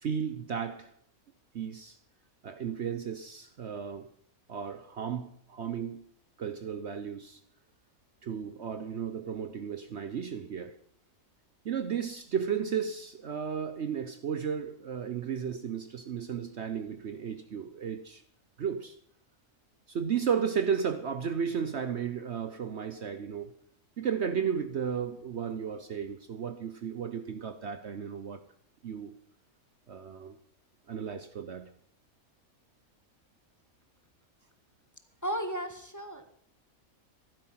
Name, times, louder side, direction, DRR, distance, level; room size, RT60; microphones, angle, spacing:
voice 1, 0.0-0.9 1.5-2.0 2.4-4.1 4.5-6.0 6.4-7.4 8.2-10.7 11.6-18.2 18.6-19.0 19.9-23.6 24.0-28.4 28.8-29.1 29.9-30.4 30.9-31.7, right 7 dB, 55° right, 1.0 m, -34 dB
voice 2, 35.2-36.3, equal, 15° left, 1.4 m, -34 dB
15.0 x 12.5 x 5.7 m
omnidirectional pair, 1.5 m